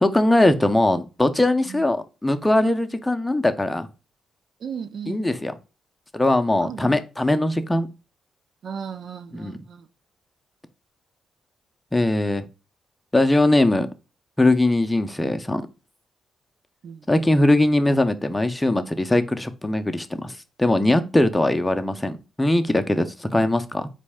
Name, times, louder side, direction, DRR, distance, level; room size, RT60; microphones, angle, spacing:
voice 1, 0.0-3.9 5.1-5.5 6.1-7.9 9.3-9.6 11.9-12.4 13.1-13.9 14.4-15.6 17.1-23.9, left 1 dB, 10° left, 0.6 m, -21 dB
voice 2, 4.6-5.2 6.6-7.0 8.6-9.8 16.8-17.0, right 7 dB, 70° right, 0.5 m, -35 dB
4.1 x 3.1 x 3.4 m
cardioid pair, 65°, 0 cm